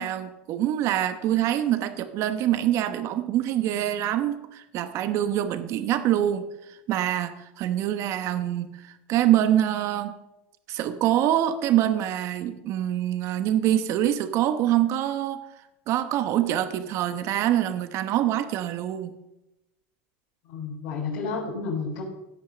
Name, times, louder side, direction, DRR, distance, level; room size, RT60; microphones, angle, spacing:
voice 1, 0.0-6.5 6.9-10.1 10.7-15.4 15.9-19.2, right 12 dB, 50° right, 10 dB, 1.1 m, -25 dB
voice 2, 20.5-22.0, left 4 dB, 60° left, -7 dB, 4.7 m, -31 dB
16.5 x 5.7 x 6.7 m, 0.91 s
supercardioid pair, 125°, 6 cm